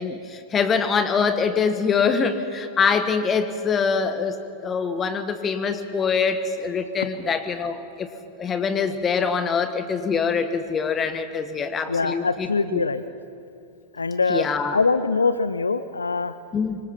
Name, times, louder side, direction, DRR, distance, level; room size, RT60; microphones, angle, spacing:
voice 1, 0.0-8.1 8.4-12.9 14.3-14.8 16.5-16.8, left 5 dB, 20° left, 10 dB, 1.5 m, -24 dB
voice 2, 11.9-13.0 13.9-16.3, left 4 dB, 75° left, 13 dB, 0.5 m, -23 dB
25.0 x 25.0 x 4.6 m, 2.5 s
figure-of-eight pair, 90°, 0 cm